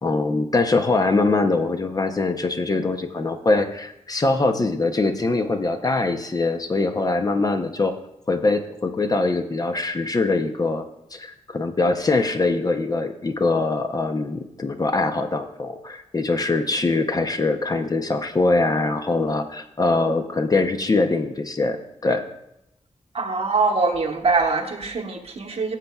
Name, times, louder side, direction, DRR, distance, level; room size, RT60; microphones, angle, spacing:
voice 1, 0.0-7.9 8.3-10.8 11.1-22.2, left 3 dB, 30° left, 6 dB, 0.6 m, -23 dB
voice 2, 23.1-25.8, right 4 dB, 50° right, 3 dB, 1.1 m, -23 dB
15.0 x 7.4 x 2.3 m, 0.84 s
wide cardioid pair, 155°, 13 cm